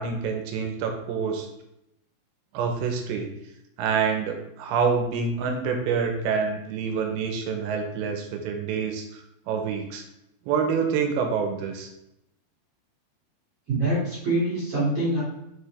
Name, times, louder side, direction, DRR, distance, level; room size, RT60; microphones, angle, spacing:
voice 1, 0.0-1.5 2.5-3.3 3.8-10.0 10.5-11.9, right 6 dB, 85° right, 4 dB, 3.0 m, -27 dB
voice 2, 13.7-15.2, right 2 dB, 35° right, -9 dB, 2.9 m, -25 dB
6.8 x 4.8 x 3.3 m, 0.83 s
omnidirectional pair, 5.2 m